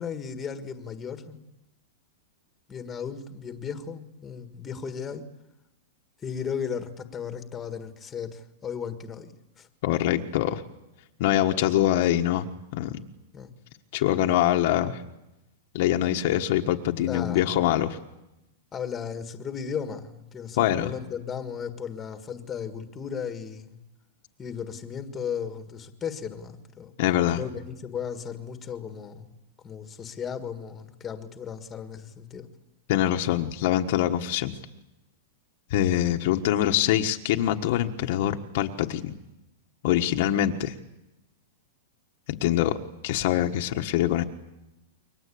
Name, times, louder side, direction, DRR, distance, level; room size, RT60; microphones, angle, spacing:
voice 1, 0.0-1.4 2.7-5.3 6.2-9.7 13.3-13.5 17.1-17.5 18.7-23.8 24.4-26.9 27.3-29.3 29.6-32.5, left 7 dB, 10° left, 8 dB, 1.6 m, -35 dB
voice 2, 9.8-10.6 11.2-13.0 13.9-15.0 15.7-18.0 20.6-20.9 27.0-27.4 32.9-34.5 35.7-39.1 39.8-40.7 42.3-42.8 43.0-44.2, left 12 dB, 45° left, 4 dB, 1.4 m, -24 dB
29.0 x 23.5 x 8.6 m, 0.94 s
supercardioid pair, 175°, 0 cm